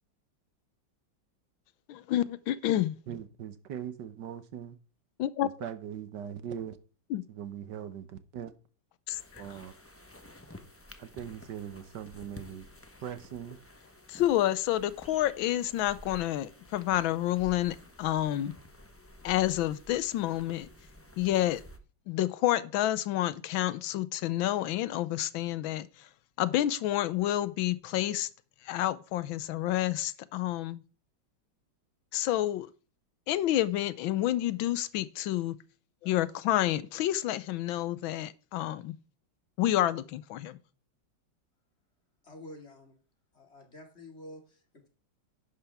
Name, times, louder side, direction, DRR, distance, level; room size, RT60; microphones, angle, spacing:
voice 1, 1.9-2.9 5.2-5.5 7.1-7.2 9.1-9.4 14.1-18.5 19.2-20.7 21.2-21.6 22.1-25.9 26.4-28.3 28.7-30.8 32.1-32.7 33.3-35.6 36.0-38.9 39.6-40.6, left 13 dB, 90° left, 1.5 m, -29 dB
voice 2, 3.1-4.8 5.6-6.8 7.3-8.5 9.4-9.7 11.0-12.7 13.0-13.6, right 9 dB, 65° right, 1.4 m, -40 dB
sound 1, 9.1-21.8, left 1 dB, 15° left, 0.5 m, -52 dB
voice 3, 42.2-43.0 43.3-44.9, left 1 dB, 35° left, 2.6 m, -49 dB
11.5 x 9.9 x 3.5 m
omnidirectional pair, 2.1 m